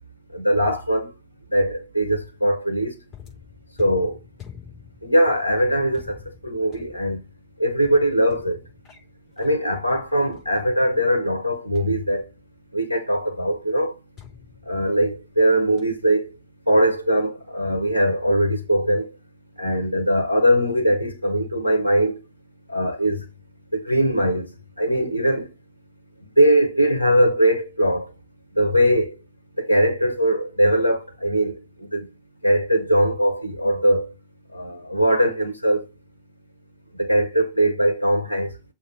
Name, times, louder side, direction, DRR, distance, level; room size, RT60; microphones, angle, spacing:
voice 1, 0.3-1.1 1.5-3.0 3.8-4.2 5.0-6.2 6.4-7.2 7.6-8.6 9.4-12.2 12.7-13.9 14.7-16.3 16.7-19.1 19.6-22.2 22.7-23.3 23.7-24.5 24.8-25.5 26.4-28.1 28.5-29.1 29.6-32.1 32.4-34.1 34.5-35.8 37.0-38.5, equal, 85° right, 1.2 m, -21 dB
sound 1, 3.1-11.0 11.7-12.7 14.2-15.4 15.8-16.1, left 9 dB, 30° left, 4.6 m, -47 dB
7.0 x 2.8 x 5.3 m
figure-of-eight pair, 90°, 0 cm